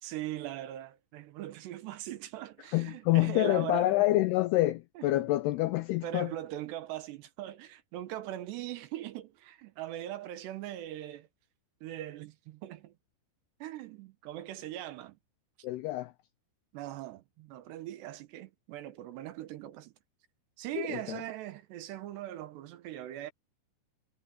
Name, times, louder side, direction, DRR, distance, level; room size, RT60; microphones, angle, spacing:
voice 1, 0.0-4.0 5.0-5.3 6.0-11.3 11.8-12.9 13.6-15.2 16.7-19.9 20.6-23.3, right 13 dB, 75° right, 3.0 m, -40 dB
voice 2, 2.7-6.3 15.6-16.1 20.8-21.2, left 17 dB, 85° left, 2.3 m, -27 dB
omnidirectional pair, 5.4 m